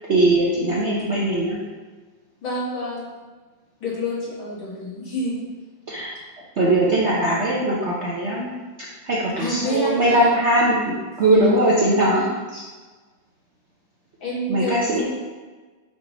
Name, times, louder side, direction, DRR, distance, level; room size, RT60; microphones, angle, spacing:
voice 1, 0.1-1.6 5.9-6.1 6.6-8.5 9.1-12.2 12.5-12.6 14.5-15.1, right 1 dB, 55° right, -5 dB, 0.7 m, -20 dB
voice 2, 2.4-3.1 3.8-5.4 9.4-10.3 11.2-12.4 14.2-15.1, equal, 75° left, -7 dB, 2.5 m, -28 dB
5.8 x 3.4 x 5.1 m, 1.3 s
omnidirectional pair, 2.1 m